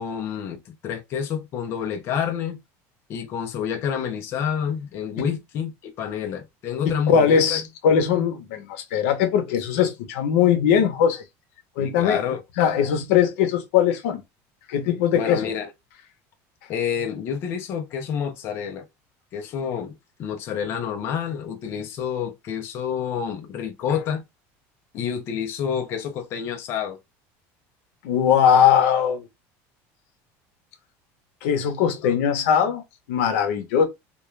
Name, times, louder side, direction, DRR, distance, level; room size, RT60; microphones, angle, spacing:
voice 1, 0.0-2.6 3.1-7.6 11.8-12.4 15.1-15.7 16.7-18.8 19.3-19.9 20.2-24.2 24.9-27.0 32.0-32.1, left 8 dB, 35° left, 0.5 m, -28 dB
voice 2, 6.8-11.2 11.8-12.2 12.6-14.2 14.7-15.5 28.0-29.3 31.4-32.8 33.1-33.8, left 8 dB, 90° left, 0.7 m, -20 dB
2.3 x 2.2 x 3.0 m
cardioid pair, 170°, 7 cm